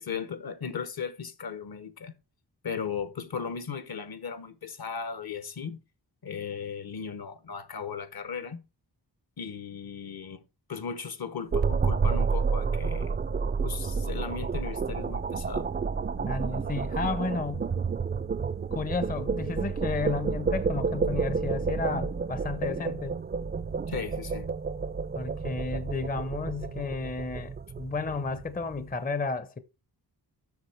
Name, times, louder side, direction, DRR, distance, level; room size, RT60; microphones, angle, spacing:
voice 1, 0.0-2.1 2.6-5.8 6.2-8.6 9.4-10.4 10.7-13.1 13.6-15.7 23.9-24.5, left 6 dB, 65° left, 1.1 m, -36 dB
sound 1, 11.5-28.8, right 5 dB, 25° right, 0.4 m, -30 dB
voice 2, 16.2-17.7 18.7-23.2 25.1-29.6, left 3 dB, 20° left, 0.6 m, -32 dB
8.1 x 6.4 x 4.5 m
wide cardioid pair, 125°, 40 cm